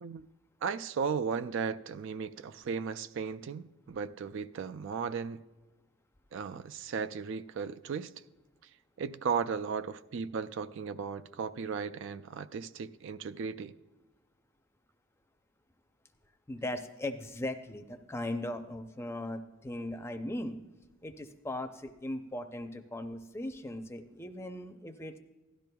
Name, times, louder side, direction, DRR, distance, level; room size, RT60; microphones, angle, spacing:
voice 1, 0.6-5.4 6.3-8.1 9.0-13.7, right 6 dB, 60° right, 0.3 m, -36 dB
voice 2, 16.5-20.6 21.0-25.2, left 1 dB, 10° left, 0.5 m, -38 dB
16.5 x 12.0 x 2.3 m
head